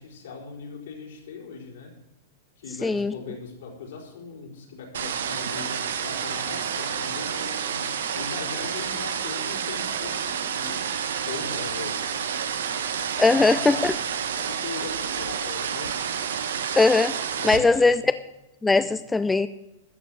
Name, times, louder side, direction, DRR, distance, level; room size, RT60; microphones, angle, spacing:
voice 1, 0.0-2.0 2.6-7.9 8.1-10.8 11.3-12.2 13.0-13.9 14.3-15.9 17.4-18.0 18.7-18.9, left 5 dB, 75° left, 0 dB, 4.7 m, -39 dB
voice 2, 2.8-3.1 13.2-13.9 16.8-17.2 17.4-18.0 18.6-19.5, left 3 dB, 10° left, 12 dB, 0.4 m, -20 dB
sound 1, 4.9-17.6, right 7 dB, 85° right, 1.3 m, -29 dB
13.5 x 6.6 x 7.9 m, 0.92 s
hypercardioid pair, 135°, 0 cm